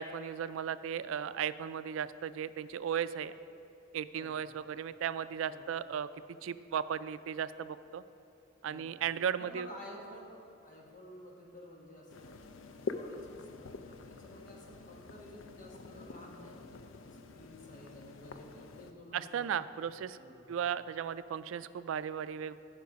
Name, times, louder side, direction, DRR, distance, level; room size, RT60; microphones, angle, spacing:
voice 1, 0.0-3.3 3.9-6.1 6.4-8.0 8.6-9.7 19.1-20.2 20.5-22.6, right 8 dB, 90° right, 15 dB, 0.3 m, -36 dB
voice 2, 9.4-12.4 12.7-19.5 19.8-19.9 20.2-20.5, left 1 dB, 40° left, -1 dB, 1.6 m, -52 dB
sound 1, 12.1-18.9, left 4 dB, 80° left, 0.5 m, -46 dB
14.0 x 4.8 x 5.2 m, 2.7 s
head